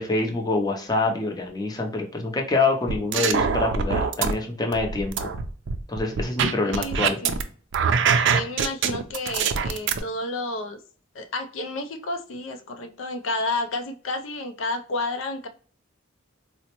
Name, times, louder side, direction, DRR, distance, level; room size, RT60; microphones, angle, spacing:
voice 1, 0.0-5.3 5.9-7.2, left 3 dB, 20° left, 2 dB, 0.6 m, -25 dB
sound 1, 2.9-4.3 4.7-7.4 7.7-10.0, right 6 dB, 65° right, 0.4 m, -23 dB
voice 2, 6.6-7.4 8.3-10.8 11.1-15.5, left 2 dB, 80° left, 6 dB, 0.5 m, -31 dB
4.0 x 2.1 x 2.9 m, 0.43 s
head